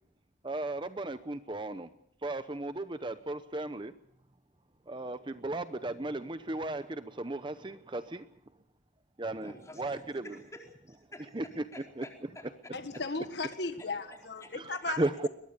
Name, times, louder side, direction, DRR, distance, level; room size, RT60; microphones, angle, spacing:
voice 1, 0.4-1.9 2.2-3.9 4.9-8.3 9.2-10.4 11.3-11.6 12.0-12.1 14.5-15.3, right 2 dB, 25° right, 11 dB, 0.8 m, -35 dB
voice 2, 9.4-12.5 12.9-13.0 14.1-14.8, left 1 dB, 15° left, 2 dB, 4.4 m, -51 dB
voice 3, 12.7-15.0, left 3 dB, 60° left, 8 dB, 1.6 m, -36 dB
22.0 x 21.5 x 6.7 m, 0.69 s
head